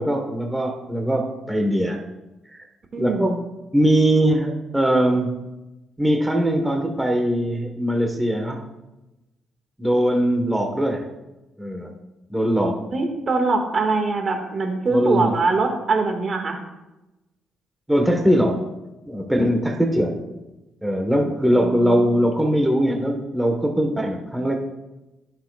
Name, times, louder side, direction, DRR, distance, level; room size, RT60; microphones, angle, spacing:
voice 1, 0.0-2.0 2.5-2.6 3.0-3.4 3.7-5.3 6.0-8.6 9.8-11.1 11.6-11.9 12.3-12.8 14.9-15.4 17.9-18.6 19.1-20.2 20.8-24.6, equal, 5° right, 2 dB, 1.4 m, -21 dB
voice 2, 2.9-3.4 12.9-16.6 21.5-22.2, right 3 dB, 45° right, 4 dB, 1.9 m, -23 dB
21.0 x 7.2 x 2.4 m, 1.0 s
cardioid pair, 90°, 0 cm